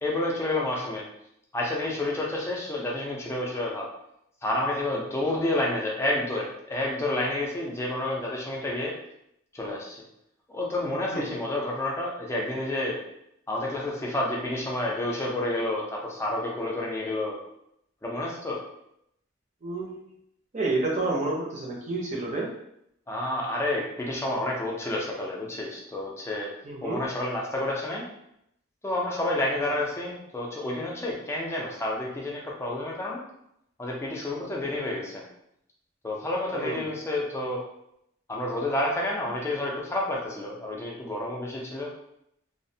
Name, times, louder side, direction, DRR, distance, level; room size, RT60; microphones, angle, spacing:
voice 1, 0.0-1.0 1.5-3.9 4.4-8.9 9.5-10.0 10.5-13.0 13.5-17.4 18.0-18.6 23.1-26.5 26.8-28.0 28.8-33.2 33.8-35.2 36.0-37.6 38.3-41.9, left 1 dB, 15° left, -2 dB, 0.4 m, -29 dB
voice 2, 19.6-20.0 20.5-22.5 26.6-27.0 36.5-36.8, right 2 dB, 35° right, -3 dB, 0.6 m, -29 dB
2.4 x 2.1 x 2.6 m, 0.76 s
head